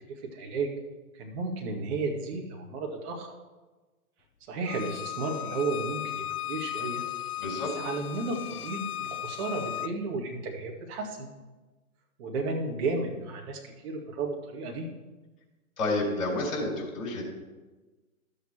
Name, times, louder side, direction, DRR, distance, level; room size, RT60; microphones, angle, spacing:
voice 1, 0.1-0.7 1.1-3.3 4.5-7.0 7.8-11.3 12.2-14.9, right 3 dB, 45° right, 0 dB, 2.1 m, -33 dB
Bowed string instrument, 4.7-9.9, left 13 dB, 85° left, 0.6 m, -36 dB
voice 2, 7.4-7.7 15.8-17.3, left 2 dB, 60° left, -2 dB, 4.1 m, -30 dB
13.0 x 7.2 x 4.4 m, 1.2 s
hypercardioid pair, 125°, 44 cm